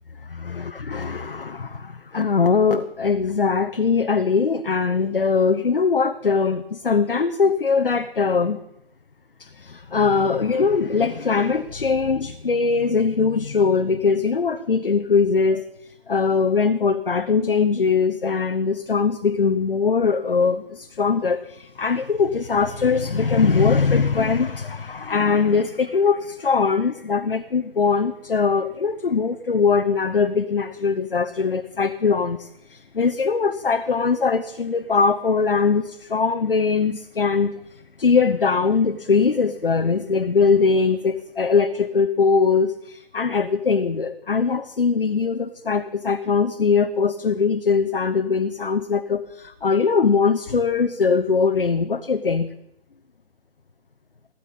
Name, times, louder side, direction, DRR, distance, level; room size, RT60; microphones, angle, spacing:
voice 1, 0.3-8.6 9.4-37.6 38.0-52.5, left 5 dB, 60° left, 8 dB, 0.9 m, -21 dB
15.5 x 13.0 x 5.3 m, 0.81 s
figure-of-eight pair, 145°, 31 cm